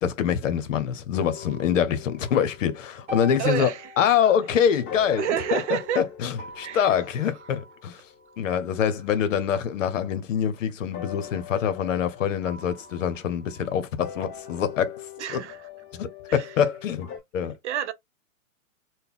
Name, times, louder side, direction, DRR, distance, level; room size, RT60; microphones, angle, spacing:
voice 1, 0.0-3.7 4.0-5.2 5.5-5.6 6.0-6.3 6.6-8.0 8.4-15.0 15.3-15.4 15.9-17.1 17.3-17.5, left 8 dB, 70° left, 0.9 m, -25 dB
sound 1, 1.3-4.6 4.9-9.8 10.9-17.2, left 7 dB, 20° left, 0.9 m, -43 dB
sound 2, 3.1-7.2, left 2 dB, 15° right, 1.3 m, -43 dB
voice 2, 3.4-3.9 5.2-6.1 6.5-7.0 7.3-7.4 15.2-15.7 16.3-16.7 17.6-17.9, right 9 dB, 60° right, 0.8 m, -29 dB
4.0 x 2.2 x 3.5 m
hypercardioid pair, 155°, 40 cm